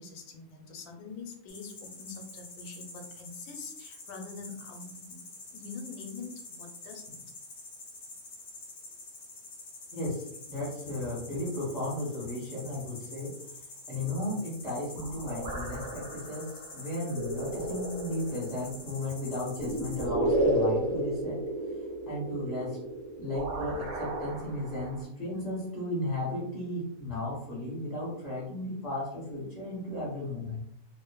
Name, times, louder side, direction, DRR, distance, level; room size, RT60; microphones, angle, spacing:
voice 1, 0.0-5.2 5.5-7.2, left 4 dB, 85° left, 3 dB, 1.1 m, -44 dB
sound 1, 1.5-20.1, left 3 dB, 50° left, 0.7 m, -47 dB
voice 2, 9.9-13.3 13.9-21.4 22.0-22.8 23.2-30.6, left 1 dB, 15° left, -8 dB, 0.8 m, -35 dB
sound 2, 15.0-25.0, right 1 dB, 60° right, 0.8 m, -33 dB
2.5 x 2.5 x 2.2 m, 0.74 s
omnidirectional pair, 1.6 m